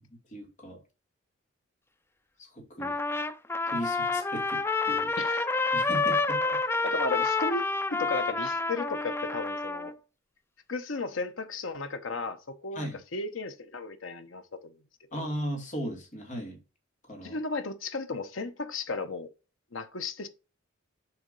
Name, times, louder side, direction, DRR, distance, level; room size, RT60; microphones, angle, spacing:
voice 1, 0.3-0.8 2.4-3.0 3.7-5.1 5.7-6.4 12.8-13.0 15.1-16.6 17.1-17.4, equal, 40° left, 2.5 m, -36 dB
Trumpet, 2.8-9.9, left 3 dB, 10° left, 0.4 m, -28 dB
voice 2, 5.2-5.5 6.4-6.6 6.8-9.9 10.7-14.8 15.1-15.3 17.2-19.3 19.7-20.3, left 3 dB, 75° left, 0.9 m, -35 dB
7.1 x 3.6 x 5.3 m
head